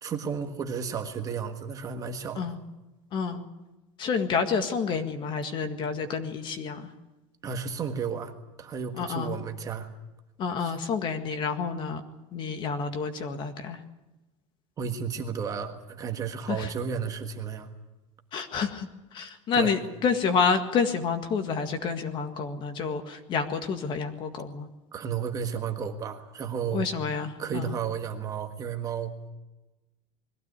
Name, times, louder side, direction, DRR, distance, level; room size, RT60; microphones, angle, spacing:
voice 1, 0.0-2.4 7.4-9.9 10.6-10.7 14.8-17.7 19.5-19.8 24.9-26.9 27.4-29.3, right 6 dB, 20° right, 5 dB, 1.5 m, -33 dB
voice 2, 3.1-3.4 4.0-6.9 9.0-9.4 10.4-12.0 12.3-13.8 16.5-16.7 18.3-18.9 19.1-24.7 26.7-27.7, left 5 dB, 30° left, 7 dB, 1.8 m, -29 dB
21.5 x 16.0 x 9.8 m, 1.0 s
cardioid pair, 170°, 16 cm